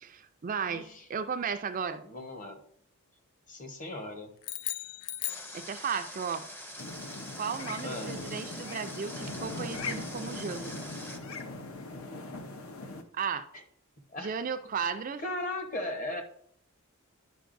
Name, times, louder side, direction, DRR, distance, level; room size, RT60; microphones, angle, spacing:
voice 1, 0.0-2.0 5.5-6.4 7.4-10.9 13.1-13.5 14.2-15.2, right 6 dB, 35° right, 9 dB, 0.4 m, -35 dB
voice 2, 0.7-1.0 2.0-2.6 3.5-4.3 7.8-8.2 13.5-13.6 14.1-14.3 15.2-16.2, left 1 dB, 35° left, 5 dB, 1.0 m, -37 dB
sound 1, 4.4-6.2, left 13 dB, 85° left, 0.3 m, -37 dB
Water, 5.3-11.2, equal, 10° left, 0.6 m, -44 dB
sound 2, 6.8-13.0, left 2 dB, 70° left, 0.8 m, -40 dB
10.0 x 5.3 x 2.6 m, 0.65 s
head